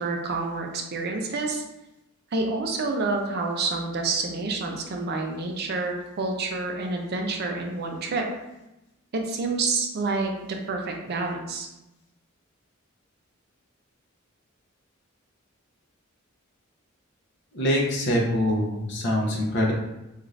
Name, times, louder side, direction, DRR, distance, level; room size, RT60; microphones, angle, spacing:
voice 1, 0.0-1.6 2.3-8.3 9.1-11.7, right 3 dB, 50° right, 2 dB, 0.4 m, -28 dB
voice 2, 17.5-19.7, left 1 dB, 55° left, -2 dB, 0.6 m, -24 dB
2.5 x 2.4 x 3.1 m, 0.94 s
head